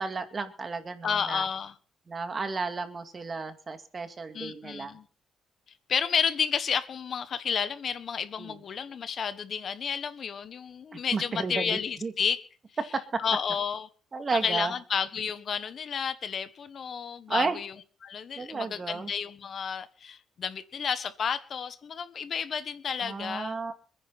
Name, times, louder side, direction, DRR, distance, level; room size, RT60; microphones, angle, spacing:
voice 1, 0.0-1.5 2.1-4.9 8.4-8.6 11.1-12.1 14.1-14.7 17.3-17.6 18.4-19.1 23.0-23.8, right 4 dB, 35° right, 2.4 m, -33 dB
voice 2, 1.0-1.7 4.3-5.0 5.9-12.4 13.2-13.9 14.4-17.7 18.0-23.6, left 7 dB, 55° left, 1.5 m, -31 dB
27.0 x 10.0 x 4.3 m
cardioid pair, 90°, 0 cm